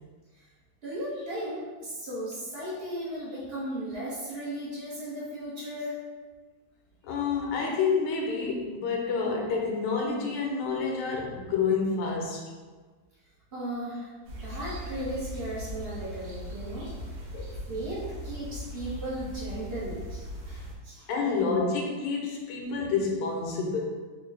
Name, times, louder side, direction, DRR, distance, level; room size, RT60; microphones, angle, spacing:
voice 1, 0.8-6.0 13.5-14.1 14.4-16.9 17.7-21.1, right 1 dB, 65° right, -8 dB, 0.6 m, -36 dB
voice 2, 7.0-12.4 17.3-17.5 21.1-23.8, left 4 dB, 80° left, 0 dB, 1.4 m, -28 dB
sound 1, 14.2-20.7, right 1 dB, 80° right, 1.6 m, -39 dB
4.5 x 2.1 x 3.3 m, 1.4 s
omnidirectional pair, 2.4 m